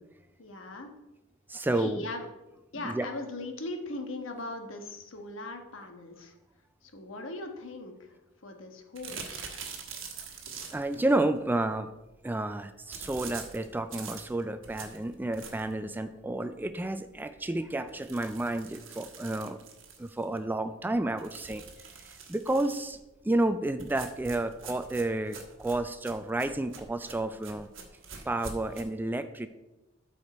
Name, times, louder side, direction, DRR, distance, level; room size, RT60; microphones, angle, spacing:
voice 1, 0.4-0.9 1.7-2.3 2.7-6.3 6.8-8.1 8.4-9.5, left 2 dB, 70° left, 4 dB, 1.3 m, -39 dB
voice 2, 1.5-2.0 2.7-3.1 10.7-11.9 12.2-19.6 20.0-21.6 22.3-23.0 23.2-27.7 28.3-29.5, right 2 dB, 10° right, 10 dB, 0.3 m, -31 dB
sound 1, 8.9-11.0 12.9-15.8 16.3-16.4 16.7-16.8 17.1-17.2 17.9-20.4 21.2-23.0 23.8-28.8, right 5 dB, 70° right, 1.3 m, -44 dB
12.5 x 5.0 x 4.2 m, 1.0 s
head